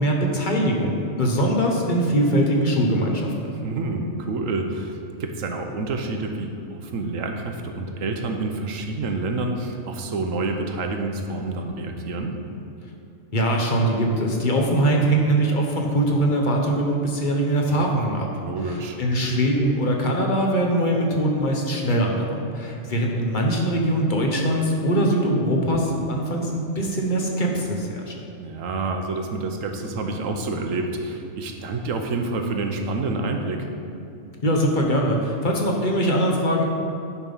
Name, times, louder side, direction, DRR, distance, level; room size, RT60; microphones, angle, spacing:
voice 1, 0.0-3.5 13.3-18.3 18.6-28.1 34.4-36.6, right 1 dB, 40° left, 0 dB, 1.3 m, -22 dB
voice 2, 3.5-12.4 18.4-19.0 28.4-33.7, right 3 dB, 85° right, 4 dB, 1.3 m, -28 dB
10.0 x 5.3 x 5.6 m, 2.7 s
omnidirectional pair, 1.3 m